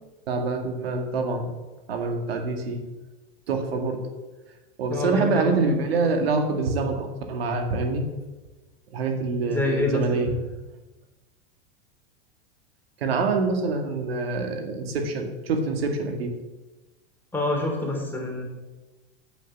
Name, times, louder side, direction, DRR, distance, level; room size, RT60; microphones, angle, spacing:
voice 1, 0.3-1.5 1.9-2.8 3.5-4.0 4.8-8.0 8.9-10.3 13.0-16.3, right 3 dB, 85° right, 4 dB, 2.1 m, -25 dB
voice 2, 4.9-5.6 9.5-10.4 17.3-18.4, left 2 dB, 5° left, 0 dB, 3.2 m, -27 dB
8.8 x 7.9 x 7.9 m, 1.2 s
supercardioid pair, 125°, 30 cm